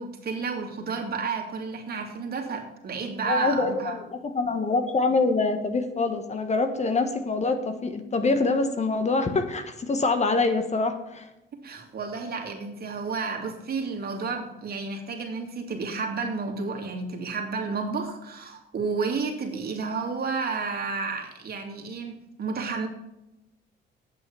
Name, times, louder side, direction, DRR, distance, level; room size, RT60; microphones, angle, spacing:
voice 1, 0.0-4.0 11.5-22.9, right 4 dB, 50° right, 2 dB, 2.6 m, -31 dB
voice 2, 3.3-11.3, left 3 dB, 35° left, 8 dB, 1.4 m, -25 dB
8.8 x 7.7 x 7.0 m, 0.89 s
cardioid pair, 90°, 20 cm